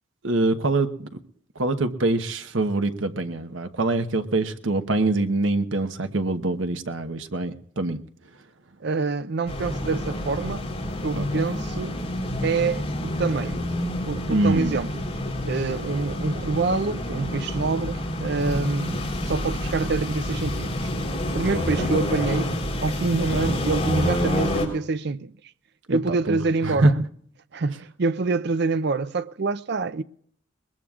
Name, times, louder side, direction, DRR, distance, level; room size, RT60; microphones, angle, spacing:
voice 1, 0.2-1.2 1.6-8.0 11.1-11.4 14.3-14.8 21.5-21.9 25.9-26.4 26.6-26.9, right 2 dB, 75° right, 1.1 m, -24 dB
voice 2, 8.8-11.9 12.4-13.6 14.1-14.9 15.4-20.8 21.3-22.5 22.8-25.3 25.9-27.0 27.5-30.0, right 3 dB, 60° right, 0.5 m, -26 dB
sound 1, 9.5-24.7, left 1 dB, 30° left, 3.9 m, -28 dB
21.5 x 20.5 x 2.4 m
head